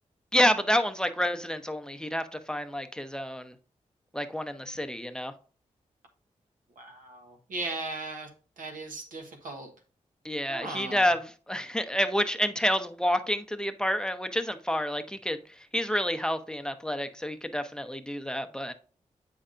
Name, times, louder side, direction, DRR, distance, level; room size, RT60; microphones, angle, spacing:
voice 1, 0.3-3.5 4.1-5.3 10.2-18.7, equal, 5° left, 8 dB, 0.8 m, -29 dB
voice 2, 6.8-8.3 8.6-9.7 10.5-11.1, right 2 dB, 80° right, 4 dB, 1.2 m, -37 dB
7.7 x 5.5 x 2.6 m, 0.39 s
cardioid pair, 45°, 14 cm